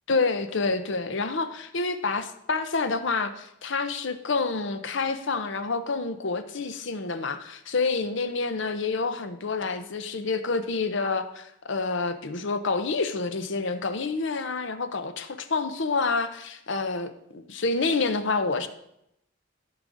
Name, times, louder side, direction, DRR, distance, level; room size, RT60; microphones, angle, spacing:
voice 1, 0.1-18.7, left 4 dB, 60° left, 10 dB, 0.7 m, -28 dB
14.0 x 4.9 x 3.9 m, 0.79 s
head